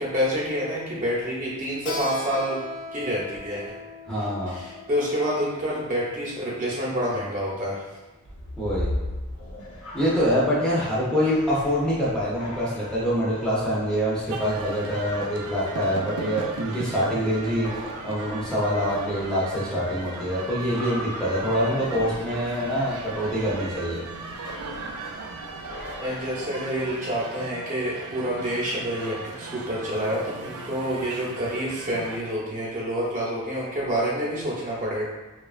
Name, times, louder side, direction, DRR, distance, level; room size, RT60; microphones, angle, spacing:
voice 1, 0.0-2.6 2.9-3.7 4.5-7.8 26.0-35.0, equal, 35° right, -7 dB, 0.8 m, -28 dB
Keyboard (musical), 1.9-7.1, left 2 dB, 50° left, 0.4 m, -39 dB
voice 2, 4.1-4.6 8.6-8.9 9.9-17.7 18.0-24.0, equal, 5° left, -8 dB, 0.6 m, -25 dB
sound 1, 8.2-26.9, left 1 dB, 80° left, 0.7 m, -40 dB
sound 2, 14.3-32.2, right 4 dB, 75° right, 0.4 m, -38 dB
2.9 x 2.3 x 2.4 m, 1.2 s
head